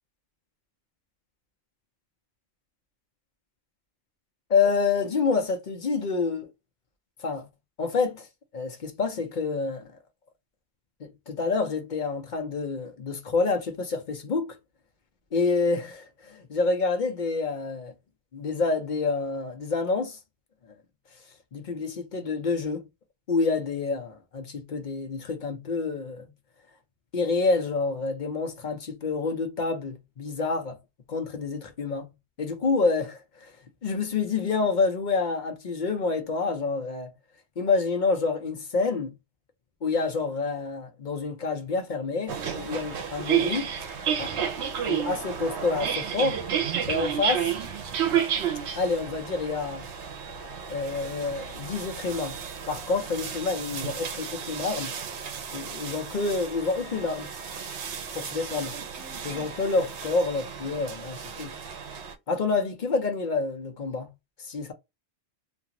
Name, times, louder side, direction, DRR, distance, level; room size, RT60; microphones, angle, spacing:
voice 1, 4.5-6.5 7.2-7.5 7.8-8.3 8.5-9.9 11.0-14.6 15.3-17.9 18.3-20.2 21.5-22.8 23.3-26.3 27.1-30.8 31.1-32.1 32.4-33.5 33.8-37.1 37.6-39.1 39.8-43.7 44.2-44.5 44.9-46.4 46.9-47.5 48.8-49.9 50.7-52.4 52.7-54.9 55.5-57.3 58.1-58.7 59.2-61.5 62.3-64.1 64.4-64.7, left 4 dB, 50° left, 0.6 m, -28 dB
sound 1, 42.3-62.1, right 8 dB, 75° right, 0.9 m, -32 dB
2.5 x 2.4 x 2.7 m
omnidirectional pair, 1.2 m